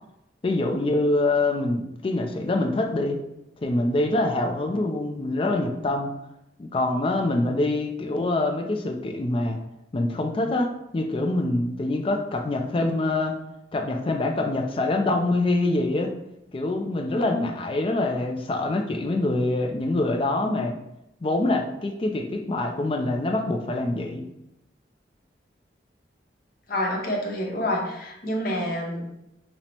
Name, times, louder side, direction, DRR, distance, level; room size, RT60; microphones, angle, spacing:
voice 1, 0.4-3.2 3.6-6.1 6.6-9.6 9.9-13.4 13.7-16.1 16.5-20.7 21.2-24.3, left 2 dB, 30° left, 4 dB, 0.4 m, -25 dB
voice 2, 26.7-29.0, left 1 dB, 50° left, 0 dB, 0.8 m, -27 dB
5.2 x 2.1 x 2.9 m, 0.86 s
head